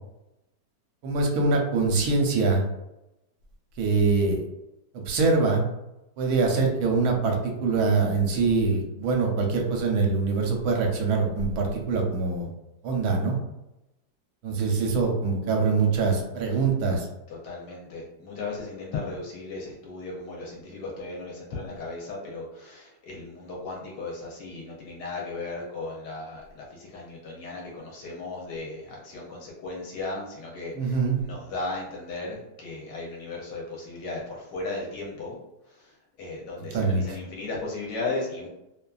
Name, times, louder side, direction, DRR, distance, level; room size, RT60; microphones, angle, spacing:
voice 1, 1.0-2.6 3.8-4.4 4.9-5.6 6.2-12.5 12.8-13.4 14.4-17.1 30.7-31.2 36.7-37.0, right 4 dB, 70° right, 1 dB, 1.1 m, -24 dB
voice 2, 17.3-35.4 35.7-35.9 36.2-38.5, left 3 dB, 80° left, -3 dB, 1.2 m, -36 dB
2.8 x 2.4 x 2.3 m, 0.93 s
omnidirectional pair, 1.8 m